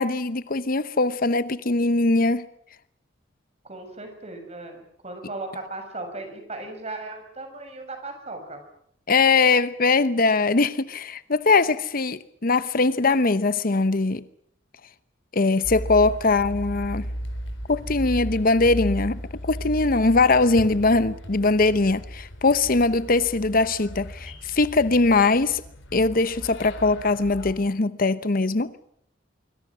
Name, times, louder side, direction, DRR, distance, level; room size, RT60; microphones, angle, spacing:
voice 1, 0.0-2.4 9.1-14.2 15.3-17.1 17.7-25.6 25.9-28.7, left 3 dB, 50° left, 0.9 m, -21 dB
voice 2, 3.6-8.6 22.6-22.8, right 2 dB, 35° right, 6.7 m, -37 dB
sound 1, 15.6-27.5, equal, 80° left, 4.2 m, -35 dB
25.0 x 24.5 x 6.2 m
head